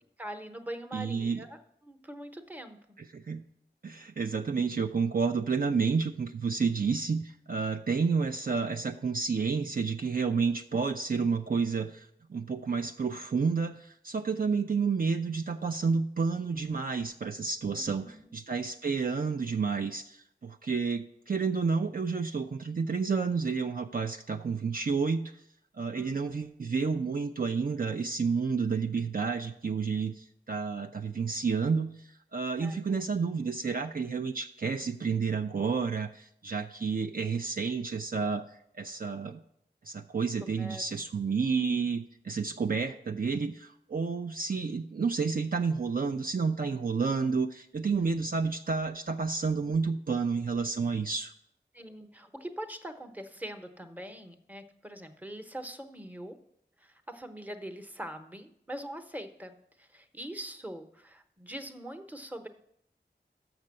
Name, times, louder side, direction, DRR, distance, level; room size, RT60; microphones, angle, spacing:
voice 1, 0.2-2.8 17.7-18.3 25.9-26.4 32.6-33.0 40.6-40.8 51.7-56.4 56.8-62.5, right 1 dB, 10° right, 7 dB, 0.9 m, -43 dB
voice 2, 0.9-1.4 3.1-3.4 3.8-25.3 25.8-39.4 39.8-51.3, right 5 dB, 50° right, 5 dB, 0.5 m, -30 dB
6.5 x 6.0 x 7.4 m, 0.71 s
wide cardioid pair, 55°, 19 cm